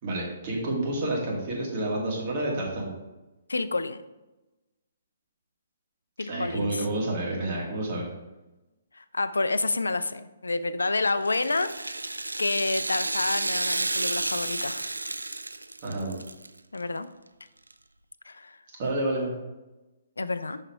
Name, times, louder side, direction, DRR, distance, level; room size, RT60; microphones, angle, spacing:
voice 1, 0.0-2.9 6.3-8.1 15.8-16.2 18.8-19.3, right 1 dB, 40° right, -3 dB, 2.2 m, -29 dB
voice 2, 3.5-4.0 6.2-6.9 8.9-15.0 16.7-17.1 18.3-18.6 20.2-20.6, left 3 dB, 75° left, 13 dB, 0.4 m, -29 dB
Rattle (instrument), 11.2-16.5 16.8-16.9 17.7-17.8, right 2 dB, 80° right, 0.3 m, -31 dB
5.8 x 5.4 x 4.7 m, 1.0 s
figure-of-eight pair, 125°, 0 cm